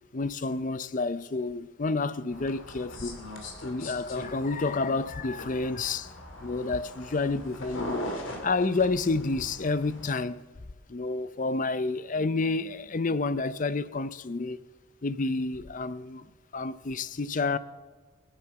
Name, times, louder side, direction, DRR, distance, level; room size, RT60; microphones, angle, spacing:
voice 1, 0.1-3.2 3.6-6.1 6.4-8.1 8.4-10.4 10.9-14.6 15.0-16.3 16.5-17.6, left 3 dB, 40° left, 0.5 m, -29 dB
sound 1, 2.3-10.1, left 1 dB, 65° left, 2.6 m, -41 dB
20.5 x 8.9 x 7.0 m
head